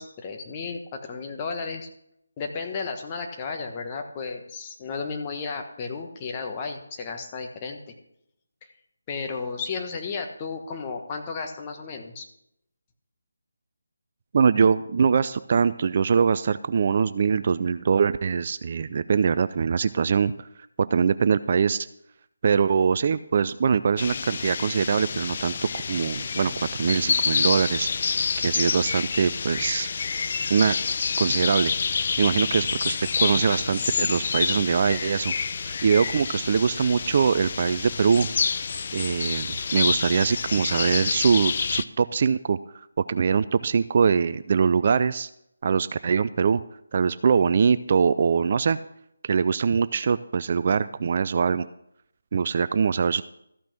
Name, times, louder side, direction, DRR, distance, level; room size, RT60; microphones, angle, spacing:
voice 1, 0.0-1.9 2.4-7.9 9.1-12.2, left 4 dB, 25° left, 3 dB, 1.2 m, -33 dB
voice 2, 14.3-20.3 20.9-21.9 22.4-27.9 28.4-29.9 30.5-30.8 31.2-31.7 32.2-35.3 35.6-38.3 38.9-42.6 43.1-45.3 45.6-46.6 46.9-48.8 49.2-51.7 52.3-53.2, right 6 dB, 40° right, 14 dB, 0.3 m, -23 dB
sound 1, 24.0-41.8, left 5 dB, 45° left, 0.4 m, -28 dB
14.0 x 6.0 x 5.8 m, 0.77 s
figure-of-eight pair, 155°, 0 cm